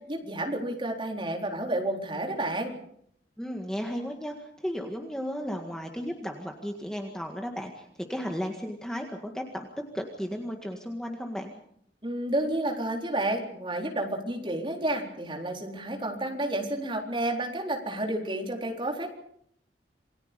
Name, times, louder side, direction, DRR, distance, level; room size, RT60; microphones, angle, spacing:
voice 1, 0.1-2.7 12.0-19.1, right 1 dB, 30° right, 1 dB, 4.0 m, -30 dB
voice 2, 3.4-9.7 9.9-11.5, equal, 5° left, 2 dB, 1.9 m, -34 dB
28.0 x 20.5 x 5.3 m, 0.69 s
head